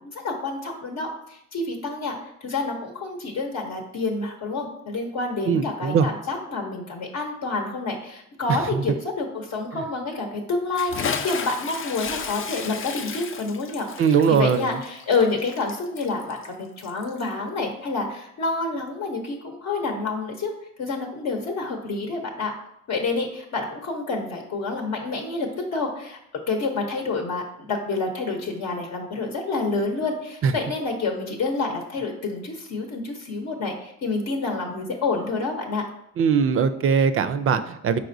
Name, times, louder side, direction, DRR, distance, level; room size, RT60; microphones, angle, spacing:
voice 1, 0.0-2.2 2.4-13.9 14.3-20.5 20.8-22.5 22.9-26.2 26.5-35.8, left 3 dB, 65° left, 2 dB, 0.8 m, -28 dB
voice 2, 5.4-6.1 8.5-8.8 9.7-9.8 14.0-14.8 30.4-30.5 36.2-38.0, right 6 dB, 45° right, 11 dB, 0.4 m, -21 dB
Bathtub (filling or washing) / Splash splatter, 10.8-17.3, left 6 dB, 45° left, 0.5 m, -33 dB
4.8 x 4.3 x 2.6 m, 0.76 s
cardioid pair, 90°, 30 cm